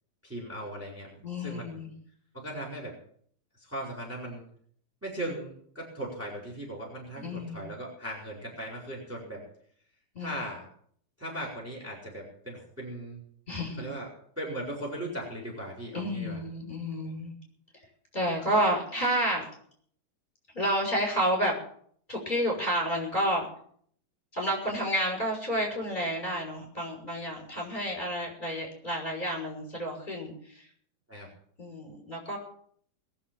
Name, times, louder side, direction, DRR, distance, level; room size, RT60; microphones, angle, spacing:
voice 1, 0.2-1.8 2.3-2.9 3.6-4.4 5.0-9.4 10.2-10.7 11.2-13.2 13.8-14.1 14.4-16.4 31.1-31.3, right 1 dB, 5° right, -2 dB, 4.3 m, -38 dB
voice 2, 1.2-1.9 7.2-7.7 10.1-10.4 13.5-13.8 15.9-17.3 18.1-19.5 20.5-21.5 22.1-23.5 24.3-30.7 31.6-32.4, equal, 20° left, 0 dB, 6.3 m, -30 dB
21.5 x 7.3 x 7.5 m, 0.62 s
omnidirectional pair, 2.3 m